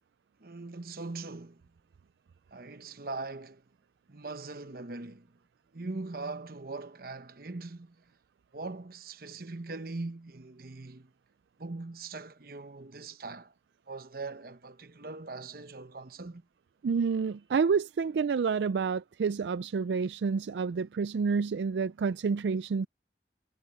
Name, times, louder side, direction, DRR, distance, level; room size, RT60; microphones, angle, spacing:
voice 1, 0.4-1.6 2.5-3.6 4.1-5.3 5.7-7.9 8.5-11.1 11.6-13.5 13.9-16.4, right 3 dB, 55° right, 1.0 m, -41 dB
voice 2, 16.8-22.9, right 5 dB, 80° right, 0.4 m, -29 dB
head